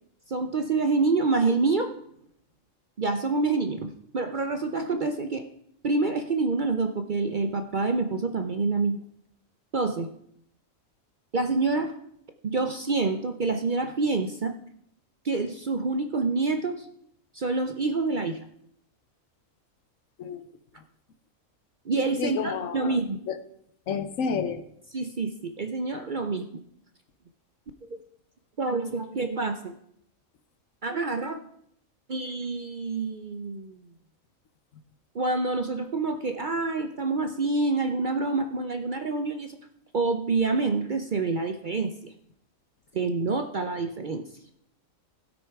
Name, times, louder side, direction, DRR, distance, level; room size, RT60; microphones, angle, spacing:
voice 1, 0.3-1.9 3.0-5.4 5.8-9.0 9.7-10.1 11.3-11.9 12.4-14.5 15.2-16.9 17.3-18.4 21.9-23.2 24.9-26.6 27.8-27.9 28.6-29.7 30.8-31.4 32.1-33.8 35.1-39.6 39.9-42.1 42.9-44.2, right 3 dB, 50° right, 7 dB, 0.6 m, -27 dB
voice 2, 22.2-23.0 23.3-23.4 23.9-24.6, left 6 dB, 70° left, 10 dB, 1.2 m, -29 dB
16.5 x 6.3 x 4.7 m, 0.72 s
omnidirectional pair, 1.4 m